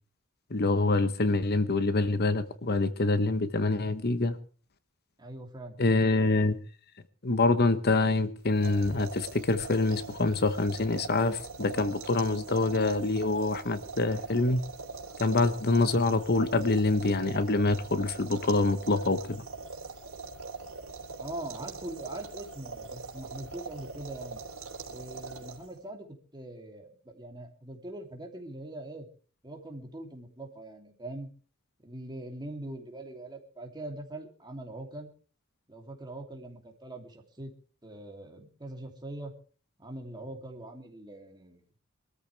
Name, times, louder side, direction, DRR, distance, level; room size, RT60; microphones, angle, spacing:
voice 1, 0.5-4.4 5.8-6.5 7.2-14.6 15.2-19.4, left 3 dB, 50° left, 1.0 m, -26 dB
voice 2, 5.2-5.8 21.2-24.4 24.9-29.1 29.4-31.3 31.8-35.1 35.7-37.5 37.8-39.3 39.8-41.6, right 1 dB, 20° right, 2.8 m, -42 dB
sound 1, 8.5-25.9, right 4 dB, 85° right, 3.2 m, -42 dB
24.0 x 13.5 x 3.3 m
head